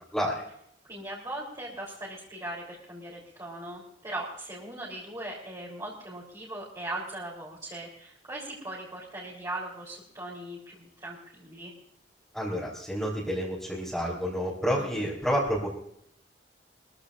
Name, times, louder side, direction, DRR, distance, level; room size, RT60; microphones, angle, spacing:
voice 1, 0.9-11.7 14.7-15.1, right 1 dB, 20° right, -6 dB, 3.8 m, -39 dB
voice 2, 12.3-15.7, equal, ahead, -7 dB, 3.7 m, -29 dB
23.0 x 15.0 x 2.6 m, 0.73 s
head